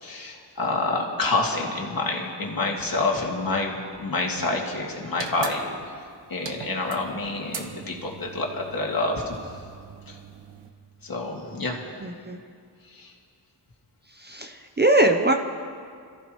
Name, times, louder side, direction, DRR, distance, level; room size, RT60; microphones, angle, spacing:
voice 1, 0.0-5.7 6.3-9.6 10.1-10.2 11.0-11.8 12.8-13.1, left 2 dB, 50° left, -1 dB, 2.4 m, -28 dB
sound 1, 5.1-10.7, right 6 dB, 80° right, 1.1 m, -41 dB
voice 2, 12.0-12.4 14.2-15.3, right 1 dB, 25° right, 5 dB, 0.7 m, -22 dB
27.0 x 14.5 x 3.1 m, 2.2 s
wide cardioid pair, 120°, 43 cm